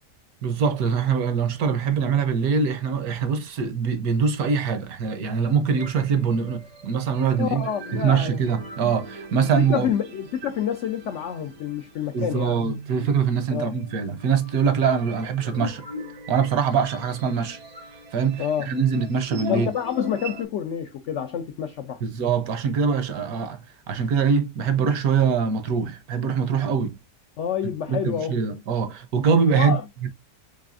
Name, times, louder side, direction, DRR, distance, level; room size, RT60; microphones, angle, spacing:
voice 1, 0.4-7.6 7.9-9.9 12.1-15.9 16.3-17.6 18.1-19.7 22.0-27.0 27.9-29.7 30.0-30.1, right 6 dB, 70° right, 1.1 m, -23 dB
sound 1, 5.7-20.4, right 1 dB, 90° right, 2.0 m, -39 dB
voice 2, 7.4-8.4 9.4-12.6 13.5-13.7 18.4-18.7 19.5-22.0 27.4-28.4 29.5-29.8, left 8 dB, 75° left, 0.6 m, -28 dB
4.0 x 3.3 x 2.4 m
omnidirectional pair, 1.7 m